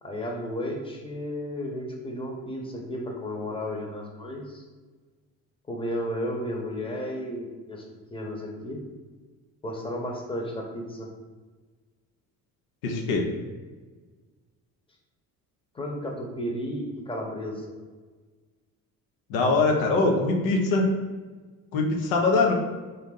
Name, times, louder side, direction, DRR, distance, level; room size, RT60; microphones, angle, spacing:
voice 1, 0.0-4.6 5.7-7.8 8.1-8.8 9.6-11.1 15.7-17.7, equal, 15° left, 1 dB, 0.8 m, -33 dB
voice 2, 12.8-13.2 19.3-20.9 21.7-22.5, left 3 dB, 90° left, 2 dB, 0.7 m, -22 dB
3.9 x 2.6 x 3.7 m, 1.4 s
cardioid pair, 90°, 35 cm